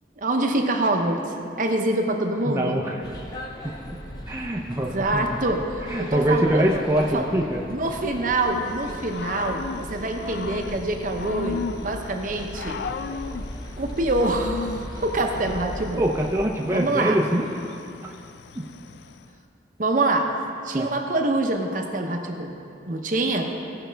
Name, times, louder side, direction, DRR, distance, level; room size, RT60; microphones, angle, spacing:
voice 1, 0.2-1.2 1.6-2.8 4.9-6.8 7.1-7.3 7.7-12.8 13.8-16.0 16.7-17.2 19.8-20.3 20.6-22.6 22.9-23.5, right 2 dB, 50° right, 3 dB, 0.7 m, -25 dB
voice 2, 2.5-3.0 3.6-3.7 4.3-5.4 5.9-7.6 16.0-17.5 18.5-18.6 20.7-20.9, right 1 dB, 15° right, -1 dB, 0.6 m, -24 dB
sound 1, 3.0-16.4, equal, 25° left, 0.7 m, -38 dB
Growling / Cricket, 8.3-19.3, left 5 dB, 70° left, 0.3 m, -37 dB
16.0 x 5.7 x 3.4 m, 2.6 s
head